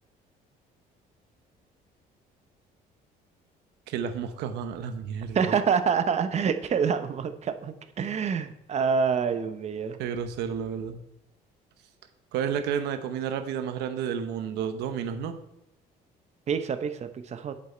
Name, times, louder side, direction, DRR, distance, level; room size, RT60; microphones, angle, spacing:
voice 1, 3.9-5.5 10.0-11.0 12.3-15.4, right 7 dB, 90° right, 9 dB, 1.0 m, -31 dB
voice 2, 5.3-10.0 16.5-17.6, right 6 dB, 40° right, 10 dB, 0.8 m, -27 dB
7.7 x 7.6 x 4.4 m, 0.82 s
cardioid pair, 110°, 17 cm